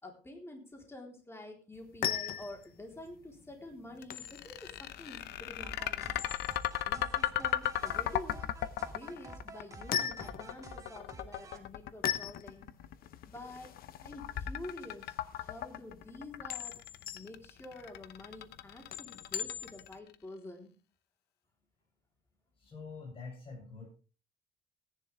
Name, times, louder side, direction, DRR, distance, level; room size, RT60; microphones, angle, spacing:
voice 1, 0.0-6.2 6.7-8.4 8.8-12.7 13.3-13.7 14.0-16.8 17.1-20.7, left 1 dB, 15° left, 1 dB, 3.9 m, -48 dB
sound 1, 1.7-20.0, left 10 dB, 60° left, 1.1 m, -41 dB
sound 2, 4.0-20.1, left 13 dB, 75° left, 0.8 m, -37 dB
sound 3, 5.6-11.6, right 3 dB, 20° right, 2.5 m, -49 dB
voice 2, 22.6-23.9, left 4 dB, 35° left, -4 dB, 7.8 m, -46 dB
17.5 x 10.5 x 3.5 m, 0.35 s
cardioid pair, 110°, 17 cm